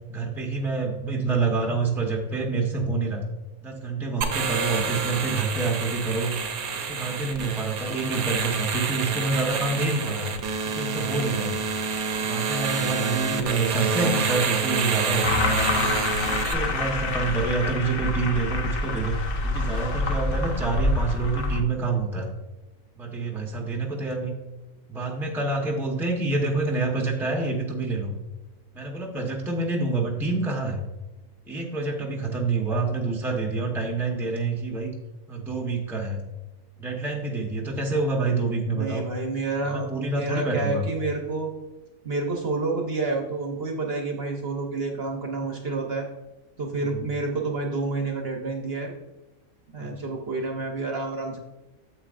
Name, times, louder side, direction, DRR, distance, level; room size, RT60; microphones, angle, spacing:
voice 1, 0.1-3.2 3.6-6.3 6.7-10.4 10.6-11.6 12.2-15.9 16.3-19.2 19.4-22.3 22.9-24.3 24.9-28.1 28.7-30.8 31.5-34.9 35.3-36.2 36.8-39.0 39.6-40.9 46.8-47.0 49.8-49.9, right 3 dB, ahead, 1 dB, 0.8 m, -27 dB
sound 1, 4.2-16.5, right 5 dB, 80° right, 1.3 m, -28 dB
sound 2, 15.2-21.6, left 2 dB, 50° left, 0.8 m, -26 dB
voice 2, 38.7-41.5 42.0-46.1 46.6-48.9 49.7-51.4, right 3 dB, 50° right, 1 dB, 1.0 m, -29 dB
8.7 x 7.6 x 2.5 m, 1.0 s
omnidirectional pair, 1.5 m